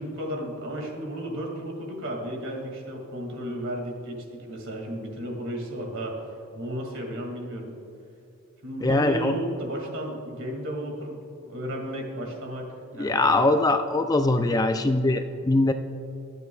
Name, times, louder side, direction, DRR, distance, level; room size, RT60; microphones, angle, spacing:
voice 1, 0.0-6.2 6.5-7.7 8.6-13.6, equal, 60° right, 1 dB, 2.2 m, -34 dB
voice 2, 8.8-9.3 13.0-15.7, left 2 dB, 15° left, 7 dB, 0.3 m, -22 dB
23.5 x 8.1 x 2.3 m, 2.8 s
head